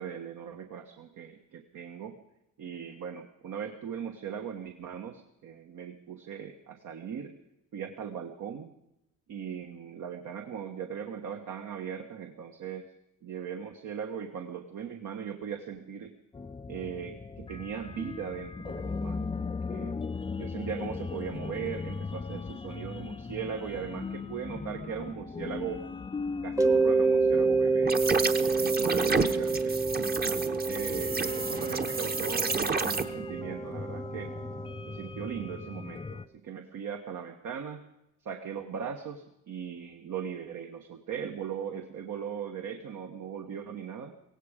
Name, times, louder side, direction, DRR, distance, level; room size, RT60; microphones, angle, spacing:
voice 1, 0.0-2.2 2.6-7.3 7.7-8.7 9.3-12.9 13.2-16.1 16.7-20.0 20.3-25.8 26.4-28.0 28.3-29.8 30.2-34.3 34.9-37.9 38.2-44.1, right 7 dB, 65° right, 4 dB, 1.4 m, -39 dB
sound 1, 16.3-36.3, left 4 dB, 15° left, 0.5 m, -39 dB
Mallet percussion, 26.6-35.2, right 4 dB, 10° right, 1.0 m, -28 dB
sound 2, 27.8-33.0, right 4 dB, 30° right, 1.1 m, -30 dB
17.5 x 16.0 x 5.1 m, 0.85 s
supercardioid pair, 70°, 33 cm